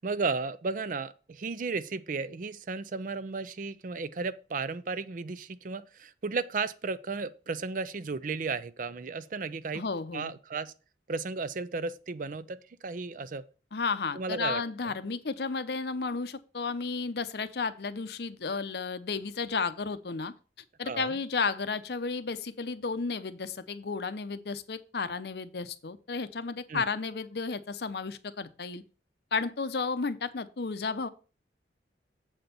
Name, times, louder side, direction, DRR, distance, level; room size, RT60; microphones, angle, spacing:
voice 1, 0.0-9.8 10.1-10.7 11.1-13.5 14.1-14.6 20.8-21.1 26.7-26.8, right 4 dB, 45° right, 0.5 m, -34 dB
voice 2, 9.7-10.3 13.7-20.3 20.8-28.8 29.3-31.1, left 4 dB, 60° left, 0.6 m, -33 dB
7.8 x 4.4 x 6.7 m
head